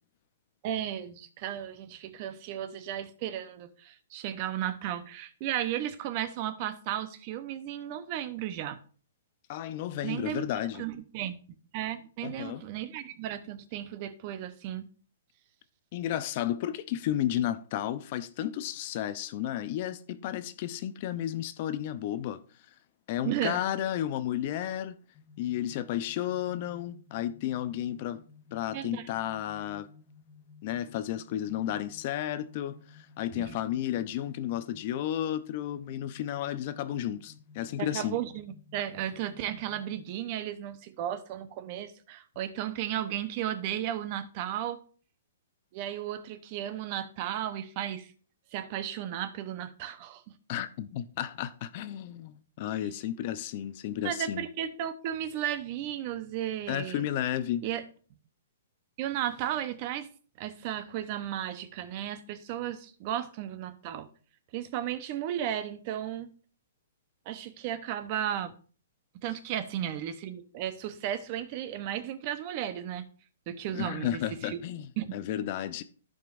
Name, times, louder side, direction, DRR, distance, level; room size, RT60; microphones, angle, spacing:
voice 1, 0.6-8.8 10.0-10.4 10.7-11.4 11.7-14.9 23.2-23.6 28.7-29.0 33.4-33.6 37.8-44.8 45.7-48.1 48.5-50.3 52.8-52.9 54.0-57.0 57.6-57.8 59.0-60.1 60.4-64.1 64.5-66.3 67.3-68.5 69.2-73.1 73.5-74.6 75.0-75.2, right 11 dB, 40° right, 0.8 m, -34 dB
voice 2, 9.5-10.8 12.2-12.6 15.9-22.4 23.1-25.0 25.4-28.2 28.5-29.9 30.6-38.2 50.5-54.4 56.7-57.6 73.7-75.8, left 11 dB, 45° left, 0.6 m, -33 dB
sound 1, 25.1-40.2, left 5 dB, 25° left, 1.2 m, -55 dB
15.0 x 5.2 x 2.6 m
hypercardioid pair, 150°, 0 cm